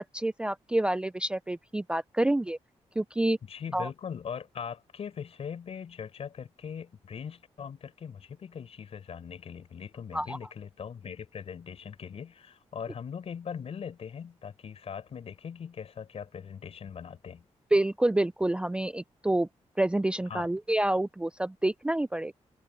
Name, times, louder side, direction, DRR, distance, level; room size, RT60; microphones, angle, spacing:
voice 1, 0.1-2.6 3.0-3.4 3.7-3.9 10.1-10.4 17.7-19.5 19.8-22.3, right 1 dB, 10° right, 0.4 m, -28 dB
voice 2, 3.4-17.4 20.3-20.5, left 7 dB, 60° left, 4.9 m, -40 dB
open air
wide cardioid pair, 140°, 12 cm